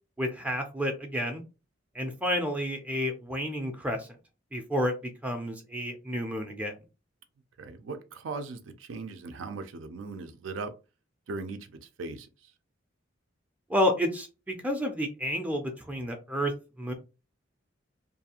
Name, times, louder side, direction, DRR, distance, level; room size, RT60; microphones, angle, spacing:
voice 1, 0.2-1.4 1.9-4.1 4.5-4.9 5.2-6.8 13.7-16.5 16.8-16.9, equal, 10° right, 0.4 m, -30 dB
voice 2, 7.6-10.7 11.3-12.5, right 3 dB, 80° right, 0.4 m, -39 dB
2.6 x 2.4 x 2.7 m
head